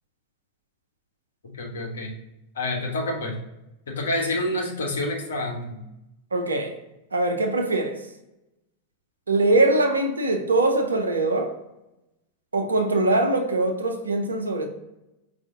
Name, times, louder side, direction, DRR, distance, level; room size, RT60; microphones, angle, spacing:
voice 1, 1.5-2.1 2.6-3.4 3.9-5.8, left 1 dB, 65° left, 0.8 m, -28 dB
voice 2, 6.3-6.7 7.1-8.0 9.3-11.5 12.5-14.7, right 2 dB, 75° right, 0.6 m, -22 dB
4.8 x 2.5 x 3.7 m
figure-of-eight pair, 90°, 0 cm